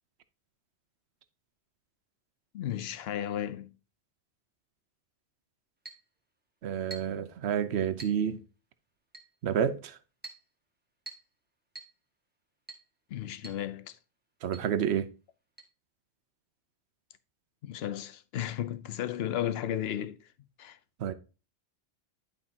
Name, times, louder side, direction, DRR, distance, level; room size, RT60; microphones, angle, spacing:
voice 1, 2.5-3.7 13.1-14.0 17.6-20.3 20.6-20.8, left 11 dB, 65° left, 0.8 m, -34 dB
Chink clink, 5.8-6.1 6.9-7.2 8.0-8.2 9.1-9.4 10.2-10.5 11.1-11.3 11.7-12.0 12.7-12.9 13.4-13.6 13.9-14.0 14.5-14.7 15.6-15.7, right 2 dB, 10° right, 1.4 m, -46 dB
voice 2, 6.6-8.4 9.4-10.0 14.4-15.1 21.0-21.1, right 8 dB, 70° right, 1.0 m, -29 dB
11.0 x 5.0 x 2.8 m
omnidirectional pair, 1.2 m